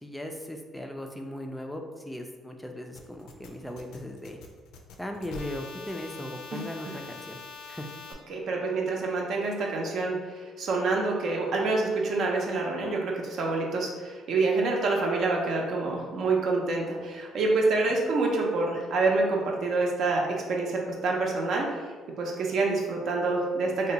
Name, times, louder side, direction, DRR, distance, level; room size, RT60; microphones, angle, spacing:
voice 1, 0.0-4.4 5.0-7.4 7.7-7.9, left 1 dB, 5° left, 3 dB, 0.3 m, -38 dB
sound 1, 3.0-8.1, left 4 dB, 80° left, 0.4 m, -44 dB
voice 2, 8.3-20.2 20.5-23.9, right 3 dB, 65° right, 0 dB, 0.7 m, -27 dB
2.7 x 2.2 x 3.9 m, 1.5 s
cardioid pair, 95°, 0 cm